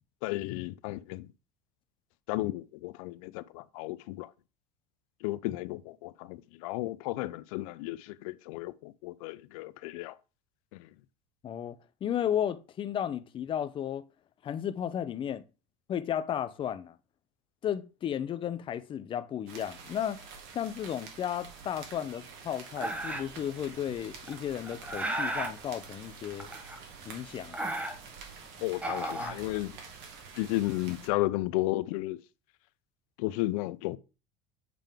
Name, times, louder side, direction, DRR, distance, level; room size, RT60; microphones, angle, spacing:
voice 1, 0.2-1.3 2.3-4.3 5.2-10.2 10.7-10.9 28.6-29.8 30.3-32.2 33.2-34.0, left 18 dB, 80° left, 0.5 m, -33 dB
voice 2, 11.4-14.0 14.4-15.4 15.9-17.0 17.6-20.2 20.5-26.5 27.0-27.7, left 9 dB, 30° left, 0.5 m, -34 dB
sound 1, 19.5-31.1, right 5 dB, 65° right, 1.7 m, -48 dB
sound 2, 22.8-23.4 24.3-25.6 26.4-27.0 27.3-28.3 28.7-29.9, right 1 dB, 10° right, 0.8 m, -35 dB
7.5 x 3.5 x 3.5 m
supercardioid pair, 135°, 18 cm